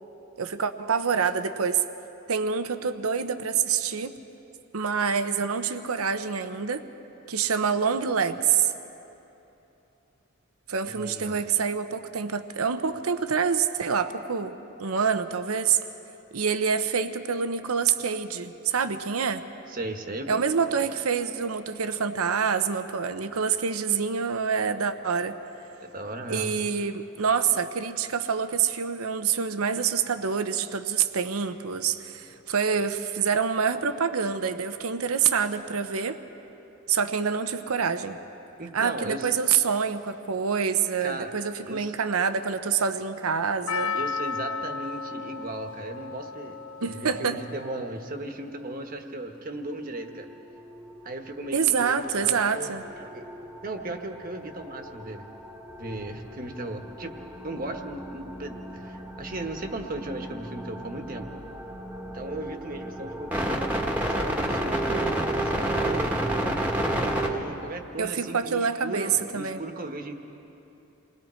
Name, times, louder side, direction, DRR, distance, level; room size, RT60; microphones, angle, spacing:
voice 1, 0.4-1.8 2.3-4.2 4.7-6.9 7.3-8.7 10.7-15.8 16.3-19.4 20.3-25.4 26.3-36.2 36.9-38.2 38.7-43.9 46.8-47.4 51.5-52.8 68.0-69.6, right 6 dB, 90° right, 9 dB, 0.8 m, -26 dB
voice 2, 10.8-11.4 19.7-20.4 20.7-21.0 25.8-26.6 38.6-39.3 41.0-41.3 41.6-41.9 43.9-46.6 46.8-50.3 51.0-53.3 53.6-55.2 55.8-57.2 57.4-61.3 62.1-63.7 64.1-66.2 67.0-70.1, right 2 dB, 40° right, 5 dB, 1.3 m, -36 dB
Percussion, 43.7-48.0 48.3-48.4, left 5 dB, 80° left, 0.6 m, -34 dB
sound 1, 50.2-51.0 51.7-52.0 52.8-67.4, right 1 dB, 5° right, 1.4 m, -31 dB
28.5 x 20.5 x 4.4 m, 2.9 s
head